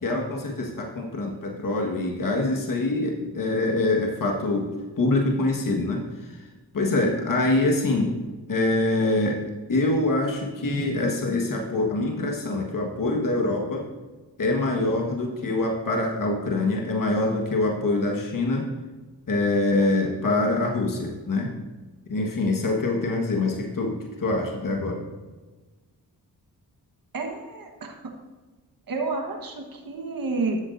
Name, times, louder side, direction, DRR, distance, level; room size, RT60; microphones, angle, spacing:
voice 1, 0.0-4.7 5.0-6.4 6.7-8.2 8.5-9.4 9.7-13.8 14.4-18.7 19.3-21.5 22.1-25.0, left 2 dB, 55° left, 0 dB, 1.6 m, -25 dB
voice 2, 27.1-28.2 28.9-30.6, right 3 dB, 55° right, 2 dB, 1.5 m, -30 dB
13.0 x 8.2 x 2.7 m, 1.3 s
cardioid pair, 65°, 40 cm